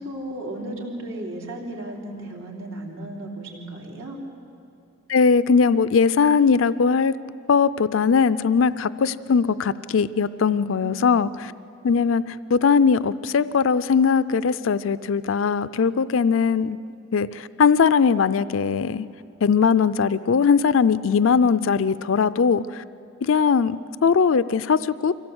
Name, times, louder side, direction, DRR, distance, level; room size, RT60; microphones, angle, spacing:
voice 1, 0.0-4.2 10.5-11.1, right 1 dB, 90° right, -2 dB, 3.6 m, -35 dB
voice 2, 5.1-7.1 7.5-11.5 11.8-16.8 17.1-19.1 19.4-22.8 23.2-25.1, left 5 dB, 85° left, 15 dB, 0.5 m, -20 dB
24.5 x 16.5 x 8.0 m, 2.6 s
head